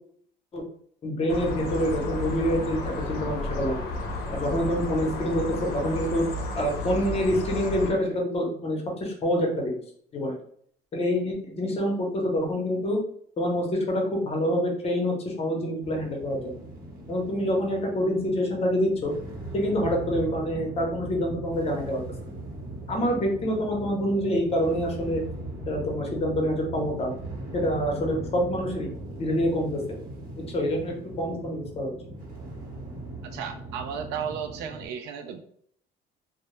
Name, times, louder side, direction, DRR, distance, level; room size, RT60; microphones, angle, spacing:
voice 1, 1.0-3.8 4.3-6.2 6.5-9.8 10.1-10.4 10.9-13.0 13.4-16.5 17.1-19.1 19.5-22.0 22.9-25.2 25.7-27.1 27.5-28.9 29.2-29.8 30.4-31.9, equal, 35° left, 1 dB, 0.8 m, -26 dB
sound 1, 1.3-7.9, left 2 dB, 70° left, 0.6 m, -32 dB
sound 2, 15.8-34.9, right 1 dB, 60° right, 0.8 m, -39 dB
voice 2, 33.2-35.4, right 7 dB, 90° right, 7 dB, 0.4 m, -34 dB
2.2 x 2.0 x 3.0 m, 0.63 s
cardioid pair, 110°, 17 cm